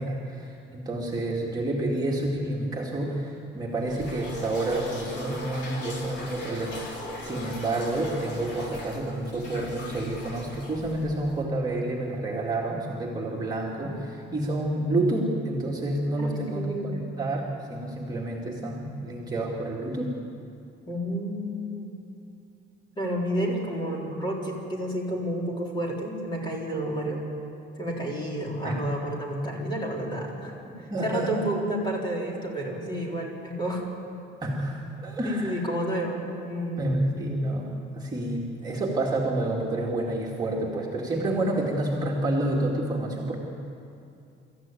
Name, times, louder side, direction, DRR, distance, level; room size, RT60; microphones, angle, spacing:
voice 1, 0.0-20.2 28.6-28.8 30.9-31.4 34.4-35.6 36.8-43.4, right 1 dB, 20° right, -3 dB, 2.1 m, -29 dB
piss on the bath, 3.8-11.4, left 1 dB, 65° left, 3.6 m, -39 dB
voice 2, 16.2-17.0 20.9-21.9 23.0-27.3 27.8-30.5 30.8-33.8 35.2-36.9, right 1 dB, 25° left, -2 dB, 3.9 m, -30 dB
26.0 x 14.0 x 9.0 m, 2.6 s
cardioid pair, 175°, 19 cm